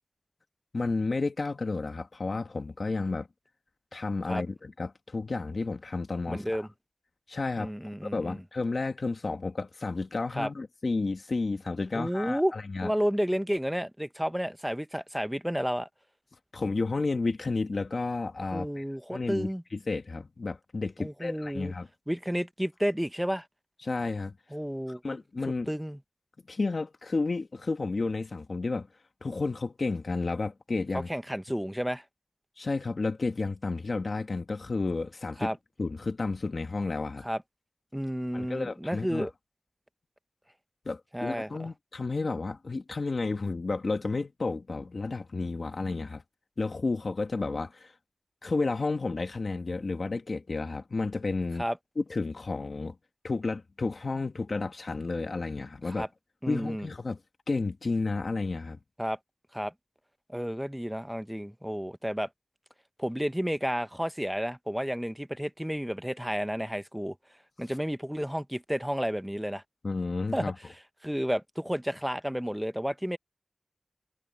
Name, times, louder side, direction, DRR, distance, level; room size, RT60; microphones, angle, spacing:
voice 1, 0.7-3.3 3.9-6.7 7.3-7.7 8.0-12.9 16.5-18.8 19.1-21.9 23.8-24.4 25.0-25.7 26.5-28.9 29.2-31.1 32.6-35.5 35.8-37.3 38.3-39.3 40.8-46.2 46.6-47.9 48.4-51.6 52.0-52.9 53.2-56.1 56.5-57.2 57.5-58.8 69.8-70.5, left 3 dB, 85° left, 1.6 m, -31 dB
voice 2, 6.3-6.7 7.6-8.4 10.3-10.5 11.9-12.5 12.8-15.9 18.5-19.6 21.0-21.7 22.1-23.4 24.5-25.0 25.7-26.0 31.1-32.0 35.4-35.6 37.2-37.4 37.9-39.3 41.1-41.5 51.6-51.8 55.9-56.1 56.4-56.9 59.0-59.2 59.5-59.7 60.3-62.3 63.0-67.1 67.6-69.6 70.3-70.5 71.0-73.2, equal, 5° right, 1.1 m, -31 dB
wide cardioid pair, 45°, 0 cm